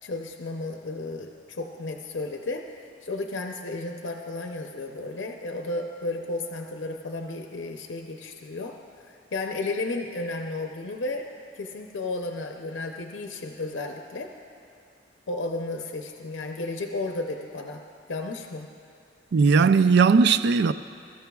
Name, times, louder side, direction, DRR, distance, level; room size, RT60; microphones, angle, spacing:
voice 1, 0.0-8.7 9.0-11.3 11.6-14.3 15.3-17.8 18.1-18.7, left 2 dB, 80° left, 0.7 m, -33 dB
voice 2, 19.3-20.7, right 5 dB, 65° right, 0.4 m, -18 dB
22.0 x 13.5 x 2.3 m
head